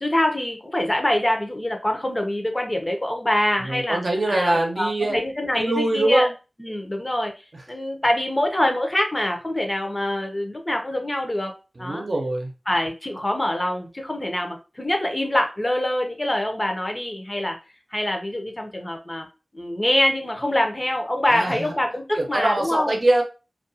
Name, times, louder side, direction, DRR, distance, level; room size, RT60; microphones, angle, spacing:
voice 1, 0.0-4.0 4.3-6.3 6.6-7.3 7.7-12.0 12.7-17.6 17.9-19.3 19.5-23.0, left 1 dB, 25° left, 3 dB, 0.6 m, -25 dB
voice 2, 3.6-5.2 5.6-6.3 11.8-12.5 21.3-21.7 22.2-23.2, right 2 dB, 55° right, 1 dB, 0.7 m, -23 dB
2.4 x 2.2 x 2.7 m, 0.30 s
wide cardioid pair, 55°, 0 cm